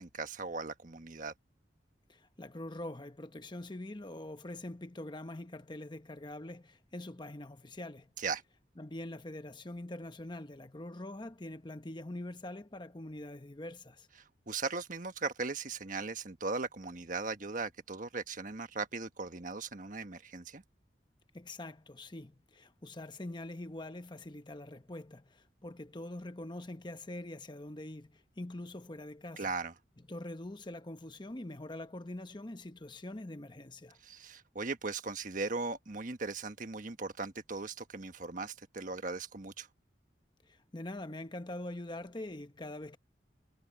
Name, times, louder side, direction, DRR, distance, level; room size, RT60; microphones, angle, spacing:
voice 1, 0.0-1.3 8.2-8.4 14.5-20.6 29.4-29.7 34.0-39.7, right 4 dB, 45° right, 1.4 m, -38 dB
voice 2, 2.1-8.1 8.8-14.1 21.3-29.5 30.1-34.0 40.5-43.0, left 1 dB, 25° left, 1.0 m, -44 dB
head